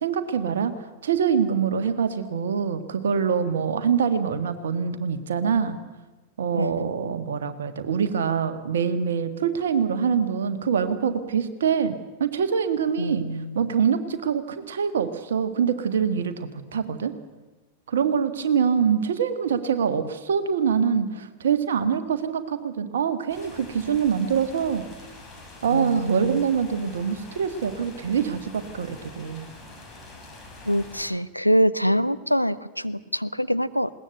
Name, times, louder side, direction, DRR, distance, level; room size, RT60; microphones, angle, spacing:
voice 1, 0.0-5.8 6.4-13.3 13.5-17.1 17.9-24.8 25.6-29.4, right 7 dB, 65° right, 9 dB, 1.7 m, -25 dB
voice 2, 6.5-6.9 13.0-13.7 25.7-26.4 30.6-33.9, equal, 90° left, 13 dB, 0.6 m, -25 dB
sound 1, 23.3-31.0, left 2 dB, 25° left, 5.8 m, -45 dB
21.0 x 18.5 x 8.1 m, 1.2 s
figure-of-eight pair, 90°, 0 cm